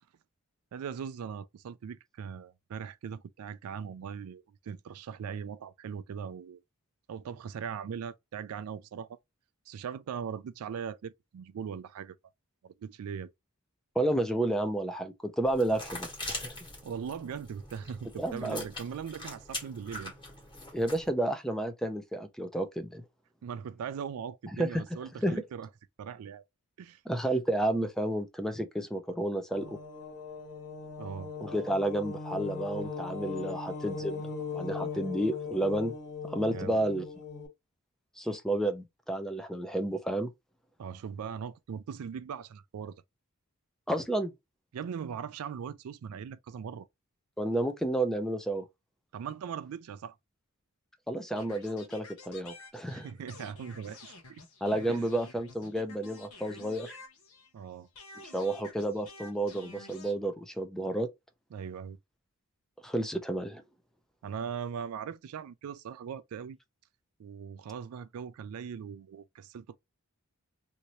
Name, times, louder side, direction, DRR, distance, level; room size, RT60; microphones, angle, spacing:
voice 1, 0.7-6.6 7.1-9.2 9.7-12.2 12.6-13.3 16.8-20.1 23.4-25.7 26.0-26.4 26.8-27.0 31.0-31.3 36.5-36.8 40.8-43.0 44.7-46.9 49.1-50.1 52.9-54.4 54.9-55.0 57.5-57.9 61.5-62.0 64.2-66.6 67.2-69.8, right 7 dB, 70° right, 0.3 m, -40 dB
voice 2, 14.0-16.6 18.2-18.6 20.7-23.0 24.6-24.8 25.2-25.4 27.1-29.8 31.4-34.3 34.5-35.9 36.2-37.0 38.2-40.3 43.9-44.3 47.4-48.6 51.1-53.1 54.6-57.0 58.3-61.1 62.8-63.6, right 1 dB, ahead, 0.4 m, -31 dB
sound 1, 15.5-21.1, left 2 dB, 20° left, 1.4 m, -42 dB
sound 2, 29.5-37.5, left 5 dB, 55° left, 1.4 m, -39 dB
sound 3, 51.4-57.6 58.0-60.2, left 2 dB, 70° left, 0.9 m, -50 dB
2.8 x 2.6 x 3.0 m
head